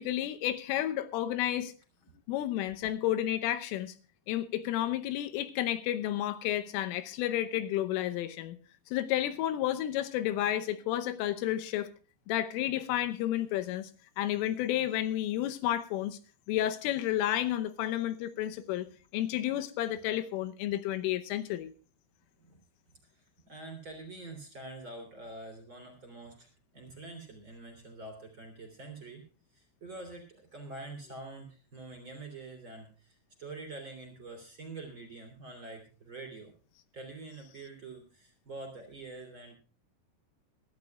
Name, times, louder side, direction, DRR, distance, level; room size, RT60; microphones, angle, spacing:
voice 1, 0.0-1.7 2.3-3.9 4.3-8.6 8.9-11.9 12.3-13.9 14.2-16.2 16.5-18.9 19.1-21.7, left 13 dB, 80° left, 3.4 m, -31 dB
voice 2, 23.1-29.2 29.5-36.5 36.9-39.6, right 2 dB, 30° right, 3.0 m, -46 dB
22.5 x 13.0 x 2.4 m
omnidirectional pair, 5.8 m